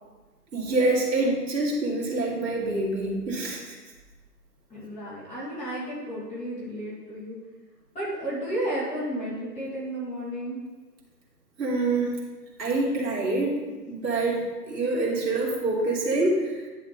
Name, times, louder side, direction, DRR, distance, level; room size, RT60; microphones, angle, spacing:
voice 1, 0.5-3.8 11.6-12.1 12.6-13.6 13.9-16.7, right 2 dB, 80° right, -4 dB, 2.8 m, -26 dB
voice 2, 4.7-7.3 7.9-10.6 13.7-13.8, right 1 dB, 15° left, -9 dB, 2.9 m, -33 dB
10.5 x 6.5 x 3.2 m, 1.3 s
hypercardioid pair, 140°, 50 cm